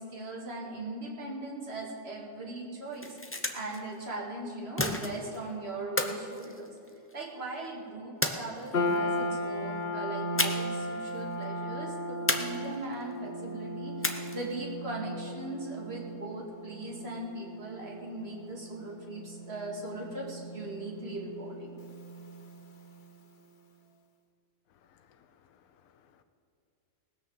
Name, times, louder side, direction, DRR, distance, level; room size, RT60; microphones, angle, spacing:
voice 1, 0.0-6.8 7.1-21.8, right 2 dB, 40° right, -2 dB, 2.4 m, -39 dB
sound 1, 2.8-3.8 4.8-5.4 6.0-7.2 8.2-9.0 10.4-10.8 11.1-11.2 12.3-13.0 14.0-14.6, left 2 dB, 15° left, 0.5 m, -32 dB
sound 2, 8.7-23.1, left 1 dB, 40° left, 0.8 m, -37 dB
voice 2, 24.8-26.2, left 8 dB, 65° left, 8 dB, 1.1 m, -64 dB
19.0 x 6.6 x 7.1 m, 2.6 s
omnidirectional pair, 1.7 m